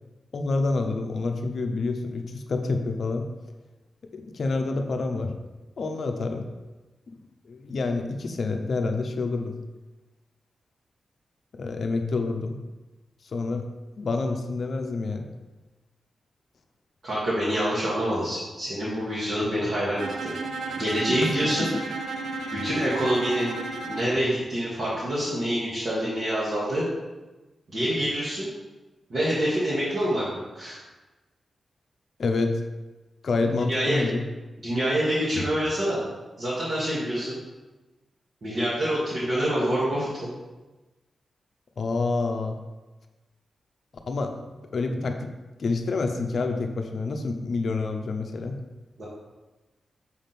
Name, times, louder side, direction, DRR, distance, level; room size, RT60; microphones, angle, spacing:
voice 1, 0.3-3.3 4.1-5.4 5.8-6.5 7.5-9.6 11.5-12.6 13.3-13.7 14.0-15.3 21.2-21.7 32.2-32.6 33.2-34.2 41.8-42.6 44.1-44.4 44.7-45.3 45.6-48.6, left 3 dB, 50° left, 5 dB, 0.6 m, -27 dB
voice 2, 17.0-20.3 20.8-21.6 22.5-23.5 23.8-26.9 27.7-28.5 29.1-30.8 33.7-34.0 34.6-36.0 36.4-37.4 38.4-40.3 49.0-49.1, equal, 45° right, -10 dB, 1.7 m, -26 dB
Bowed string instrument, 20.0-24.2, right 3 dB, 90° right, 0.6 m, -33 dB
6.3 x 3.6 x 5.8 m, 1.1 s
wide cardioid pair, 175°, 0 cm